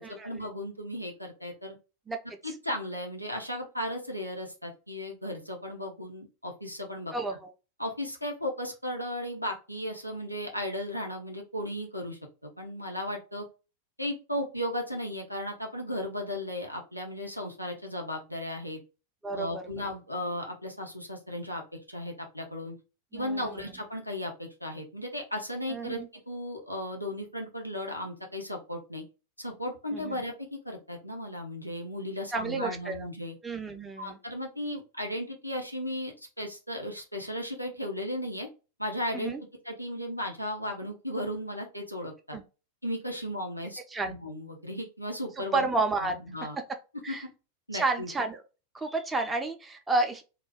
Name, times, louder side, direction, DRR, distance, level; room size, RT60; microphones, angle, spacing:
voice 1, 0.0-1.8 2.4-7.1 7.8-13.4 14.0-18.8 19.3-22.8 23.1-29.0 29.4-33.4 34.0-38.5 38.8-39.3 39.6-42.4 42.8-45.7 46.0-46.6 47.1-47.2 47.7-48.1, left 1 dB, 90° left, 0 dB, 0.6 m, -35 dB
voice 2, 7.1-7.5 19.2-19.6 23.1-23.6 25.7-26.1 29.9-30.2 32.3-33.1 33.4-34.2 39.1-39.4 42.3-42.4 43.9-44.2 45.5-46.2 47.0-47.2 47.7-48.4 48.7-50.2, right 3 dB, 10° right, 4 dB, 0.4 m, -31 dB
2.3 x 2.2 x 3.3 m, 0.31 s
figure-of-eight pair, 90°, 0 cm